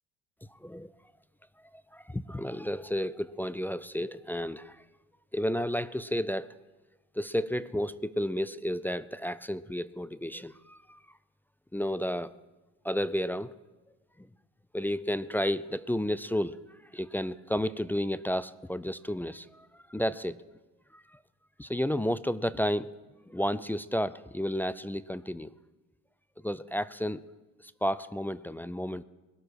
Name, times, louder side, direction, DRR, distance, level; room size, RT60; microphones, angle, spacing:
voice 1, 1.9-4.8 5.3-6.5 7.2-11.0 11.7-12.3 12.8-13.5 14.2-14.3 14.7-16.6 16.9-20.4 20.9-21.2 21.6-23.0 23.3-25.5 26.4-27.2 27.6-29.0, equal, 5° left, 14 dB, 0.4 m, -32 dB
21.0 x 12.5 x 4.8 m, 1.1 s
supercardioid pair, 85°, 35 cm